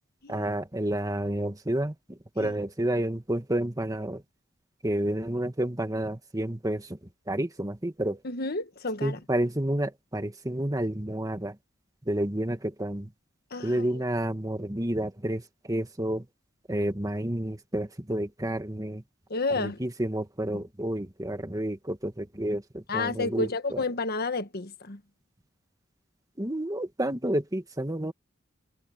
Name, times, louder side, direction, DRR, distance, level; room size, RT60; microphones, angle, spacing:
voice 1, 0.3-4.2 4.8-7.0 7.3-8.2 9.0-11.6 12.1-13.1 13.6-16.3 16.7-19.0 19.6-23.8 26.4-28.1, right 1 dB, 20° right, 1.8 m, -30 dB
voice 2, 8.2-9.2 13.5-14.0 19.3-19.8 22.9-25.0, left 3 dB, 50° left, 1.4 m, -31 dB
head